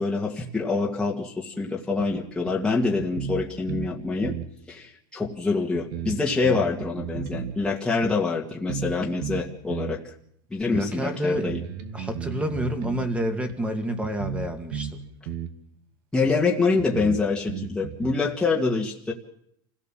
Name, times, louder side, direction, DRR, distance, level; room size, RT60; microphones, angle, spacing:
voice 1, 0.0-4.3 4.7-10.0 10.5-11.6 16.1-19.1, left 4 dB, 5° left, -2 dB, 2.0 m, -25 dB
sound 1, 2.0-2.1 2.5-2.6 3.0-4.0 4.2-4.5 5.2-5.3 5.7-7.6 8.0-8.1 8.7-9.0 9.2-10.0 10.7-10.8 11.3-13.1 13.5-13.6 14.0-15.0 15.3-15.5 16.3-16.4 16.8-18.1, right 8 dB, 70° right, 2.7 m, -33 dB
voice 2, 10.7-11.6 11.9-15.0, equal, 10° right, 7 dB, 2.2 m, -28 dB
27.5 x 17.0 x 7.7 m, 0.71 s
supercardioid pair, 160°, 12 cm